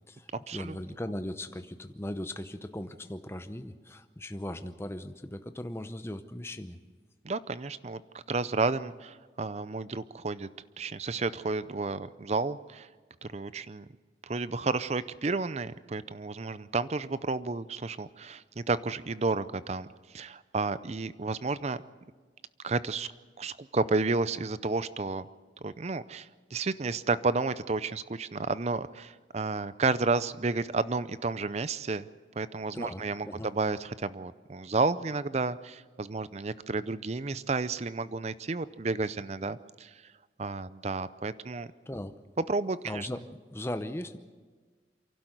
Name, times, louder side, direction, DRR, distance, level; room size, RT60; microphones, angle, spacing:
voice 1, 0.1-6.8 32.7-33.5 41.9-42.1 42.8-44.2, left 1 dB, 15° left, 9 dB, 0.8 m, -38 dB
voice 2, 7.2-8.0 8.3-10.5 10.8-12.9 13.2-13.9 14.2-19.9 20.1-21.8 22.6-23.1 23.4-25.3 25.6-32.1 32.4-39.9 40.4-41.7 42.5-43.1, right 3 dB, 35° right, 15 dB, 0.5 m, -31 dB
28.0 x 12.0 x 7.9 m, 1.4 s
head